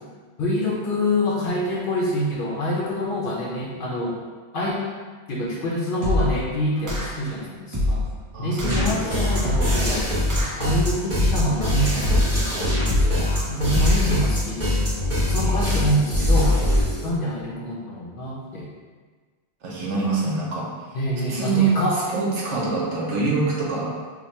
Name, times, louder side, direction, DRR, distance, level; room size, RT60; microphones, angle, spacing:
voice 1, 0.4-4.2 4.5-4.8 5.3-8.1 8.4-10.1 10.6-14.9 15.3-16.6 17.0-18.7 19.9-20.0 20.9-22.0, left 1 dB, 55° left, -4 dB, 0.7 m, -26 dB
sound 1, 6.0-6.4 6.9-7.3 7.7-8.1 8.6-8.9 9.4-9.9 10.3-10.7 11.2-11.6 12.0-12.4 12.9-13.3 13.7-14.2, left 1 dB, 30° right, 0.3 m, -23 dB
voice 2, 8.3-9.4 15.4-15.9 19.6-20.7 21.3-21.7 22.1-23.9, right 4 dB, 80° right, -5 dB, 1.1 m, -25 dB
sound 2, 8.7-17.1, left 1 dB, 15° right, 0.8 m, -23 dB
3.0 x 2.1 x 4.2 m, 1.5 s
omnidirectional pair, 1.2 m